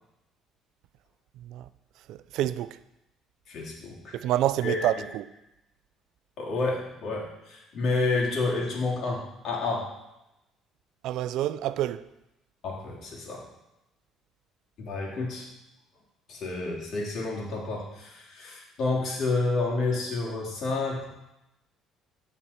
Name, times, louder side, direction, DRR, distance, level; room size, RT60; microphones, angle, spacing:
voice 1, 2.1-2.8 4.1-5.3 11.0-12.0, right 13 dB, 75° right, 0.3 m, -28 dB
voice 2, 3.5-4.2 4.6-5.0 6.4-9.9 12.6-13.4 14.8-15.5 16.3-21.1, left 3 dB, 60° left, 2.8 m, -30 dB
13.5 x 4.6 x 4.2 m
supercardioid pair, 85°, 0 cm